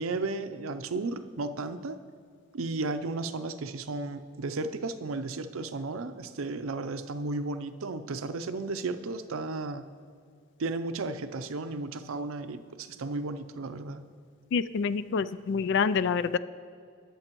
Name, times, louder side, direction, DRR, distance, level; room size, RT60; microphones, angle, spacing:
voice 1, 0.0-2.0 2.5-9.9 10.6-14.0, right 3 dB, 80° right, 10 dB, 0.5 m, -34 dB
voice 2, 14.5-16.4, left 5 dB, 55° left, 14 dB, 0.3 m, -27 dB
19.5 x 7.1 x 3.0 m, 2.2 s
head